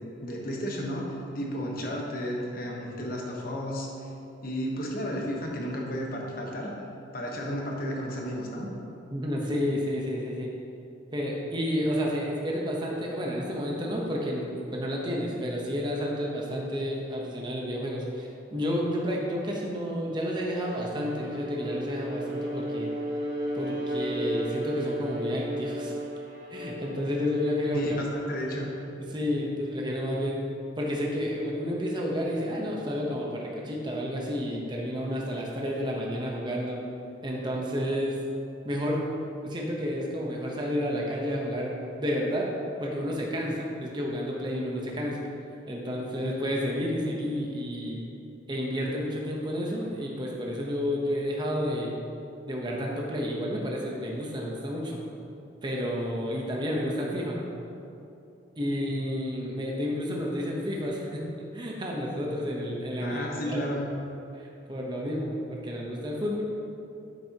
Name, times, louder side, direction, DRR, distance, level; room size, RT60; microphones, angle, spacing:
voice 1, 0.2-1.1 1.3-3.9 4.4-6.7 7.1-8.7 27.7-28.7 63.0-63.9, equal, 45° left, -1 dB, 1.1 m, -32 dB
voice 2, 9.1-10.5 11.1-22.9 23.6-25.9 26.5-28.0 29.1-30.4 30.8-36.8 37.2-38.2 38.6-39.1 39.4-42.5 42.8-45.2 45.7-48.0 48.5-51.9 52.5-55.0 55.6-57.4 58.6-61.2 61.5-63.6 64.3-66.4, equal, 25° right, -2 dB, 0.9 m, -30 dB
Bowed string instrument, 20.6-29.0, right 1 dB, 65° right, 1.3 m, -34 dB
9.1 x 7.4 x 2.9 m, 2.8 s
head